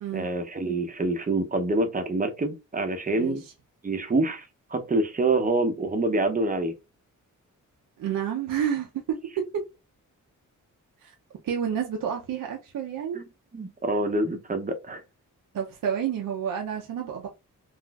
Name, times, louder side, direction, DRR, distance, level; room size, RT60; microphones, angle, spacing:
voice 1, 0.1-3.4 3.8-4.5 4.7-6.7 13.1-13.2 13.5-15.0, right 2 dB, 25° right, 0.6 m, -26 dB
voice 2, 3.1-3.5 8.0-9.6 11.0-11.1 11.4-13.2 15.5-17.3, right 8 dB, 80° right, 0.6 m, -30 dB
3.9 x 2.4 x 2.3 m
wide cardioid pair, 100°, 33 cm